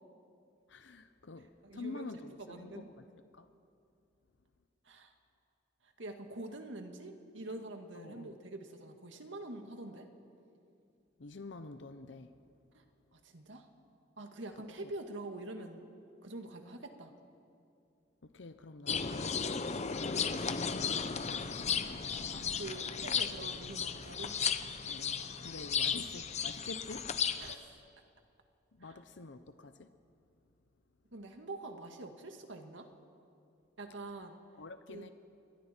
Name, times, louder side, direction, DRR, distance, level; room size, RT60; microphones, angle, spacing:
voice 1, 0.7-3.1 3.3-3.5 7.9-8.4 11.2-12.3 14.8-14.9 18.2-19.3 19.8-21.3 24.9-27.2 28.7-29.9 34.6-35.1, left 3 dB, 70° left, 9 dB, 0.8 m, -47 dB
voice 2, 1.4-2.9 4.9-5.1 5.8-10.1 12.7-12.8 13.1-13.7 14.2-15.9 16.2-17.1 22.0-24.4 27.4-27.8 28.8-29.0 31.1-32.9 33.8-34.4 34.9-35.1, right 2 dB, 85° right, 5 dB, 1.9 m, -46 dB
sound 1, 18.9-27.5, left 6 dB, 40° left, 0.8 m, -35 dB
29.5 x 22.5 x 4.5 m, 2.6 s
head